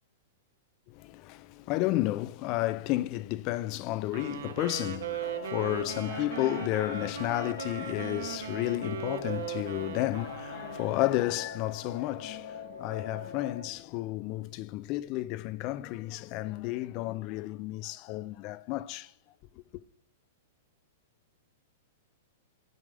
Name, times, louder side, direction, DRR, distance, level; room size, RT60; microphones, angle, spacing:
voice 1, 1.0-19.1, left 16 dB, 30° left, 0.3 m, -32 dB
Wind instrument woodwind instrument, 4.1-11.3, right 9 dB, 75° right, 1.2 m, -38 dB
sound 1, 5.2-13.6, left 5 dB, 75° left, 2.4 m, -44 dB
15.0 x 6.2 x 3.3 m
supercardioid pair, 175°, 0 cm